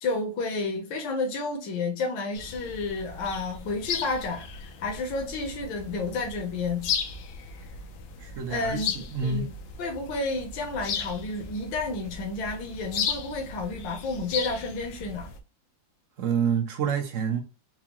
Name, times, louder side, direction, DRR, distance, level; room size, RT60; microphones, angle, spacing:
voice 1, 0.0-6.9 8.5-8.9 9.2-9.5 9.8-15.3, left 3 dB, 75° left, 1.6 m, -31 dB
sound 1, 2.3-15.4, left 6 dB, 90° left, 1.5 m, -36 dB
voice 2, 8.2-9.5 16.2-17.4, right 6 dB, 60° right, 0.8 m, -28 dB
4.7 x 2.3 x 2.9 m
omnidirectional pair, 2.1 m